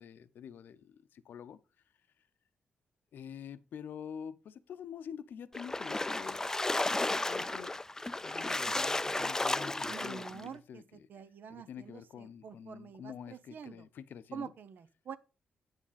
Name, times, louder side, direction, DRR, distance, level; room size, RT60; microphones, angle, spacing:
voice 1, 0.0-1.6 3.1-6.5 7.3-7.7 8.2-11.1 11.5-14.5, left 8 dB, 80° left, 0.6 m, -47 dB
Splash splatter, 5.5-10.4, left 2 dB, 15° left, 0.4 m, -33 dB
voice 2, 9.9-13.9 14.3-15.2, right 7 dB, 70° right, 0.7 m, -47 dB
8.8 x 6.2 x 4.0 m
cardioid pair, 90°, 3 cm